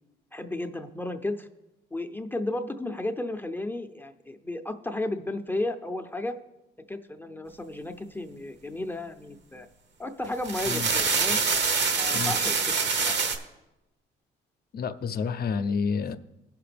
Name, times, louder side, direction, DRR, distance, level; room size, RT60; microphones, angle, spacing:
voice 1, 0.3-1.5 1.9-6.4 6.9-9.7 10.0-11.4 11.9-13.1, left 2 dB, 10° left, 6 dB, 0.6 m, -33 dB
sound 1, 10.2-13.4, right 5 dB, 65° right, 1.2 m, -25 dB
voice 2, 14.7-16.2, left 5 dB, 50° left, 11 dB, 0.6 m, -29 dB
17.0 x 5.8 x 3.4 m, 0.94 s
cardioid pair, 90°, 20 cm